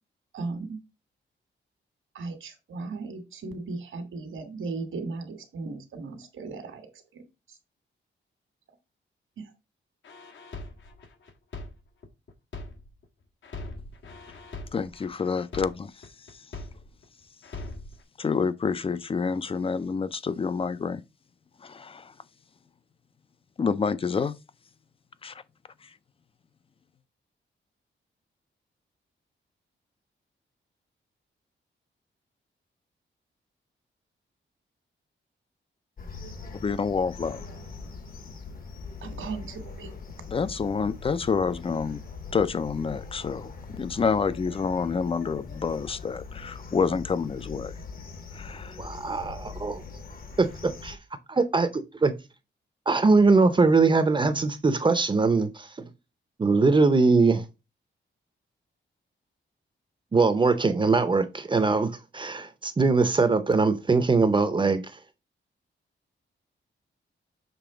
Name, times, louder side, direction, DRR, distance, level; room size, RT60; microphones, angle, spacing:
voice 1, 0.3-0.8 2.1-6.9 7.1-7.2 9.4-9.5 39.0-39.9, right 3 dB, 80° right, 1.6 m, -36 dB
sound 1, 10.0-13.1 13.4-17.1 17.4-18.0, left 2 dB, 70° left, 1.3 m, -41 dB
voice 2, 14.7-15.9 18.2-21.0 21.6-22.1 23.6-24.3 25.2-25.4 36.5-37.4 40.3-42.0 42.3-47.7 48.3-48.8, left 5 dB, 30° left, 0.4 m, -28 dB
sound 2, 36.0-51.0, left 4 dB, 45° left, 1.0 m, -41 dB
voice 3, 48.8-49.8 50.4-51.0 51.3-52.1 52.9-55.7 56.4-57.4 60.1-64.8, right 4 dB, 25° right, 0.6 m, -22 dB
6.9 x 3.3 x 4.9 m
wide cardioid pair, 175°, 20 cm